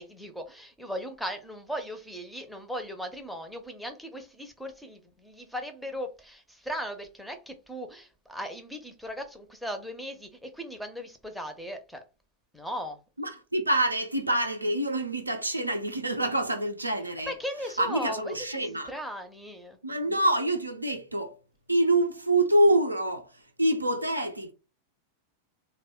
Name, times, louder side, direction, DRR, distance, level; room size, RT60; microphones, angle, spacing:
voice 1, 0.0-12.0 12.5-13.0 17.3-19.8, equal, ahead, 0.5 m, -38 dB
voice 2, 13.2-17.3 17.8-18.9 19.8-21.4 21.7-24.5, right 1 dB, 85° right, 0.4 m, -26 dB
2.1 x 2.1 x 3.5 m
figure-of-eight pair, 90°, 0 cm